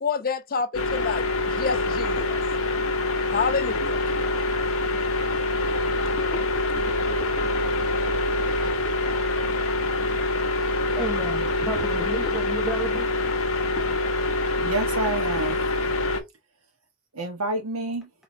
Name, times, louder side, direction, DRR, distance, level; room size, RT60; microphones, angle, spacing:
voice 1, 0.0-2.4 3.3-4.0, left 5 dB, 45° left, 0.5 m, -28 dB
sound 1, 0.7-16.2, left 2 dB, 70° left, 0.9 m, -25 dB
voice 2, 11.0-13.5, right 2 dB, ahead, 0.5 m, -33 dB
voice 3, 14.6-15.7 17.1-18.1, right 2 dB, 90° right, 1.3 m, -29 dB
4.8 x 3.2 x 2.7 m
head